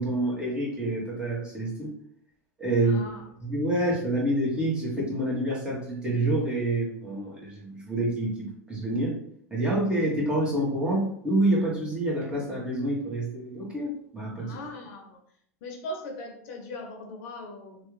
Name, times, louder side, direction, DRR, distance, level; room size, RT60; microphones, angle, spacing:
voice 1, 0.0-1.9 2.6-3.1 3.4-9.2 9.5-14.6, right 1 dB, 10° right, -5 dB, 1.5 m, -27 dB
voice 2, 2.8-3.2 14.4-15.2 15.6-17.9, left 1 dB, 60° left, 2 dB, 0.9 m, -39 dB
3.1 x 2.4 x 3.3 m, 0.68 s
hypercardioid pair, 100°, 9 cm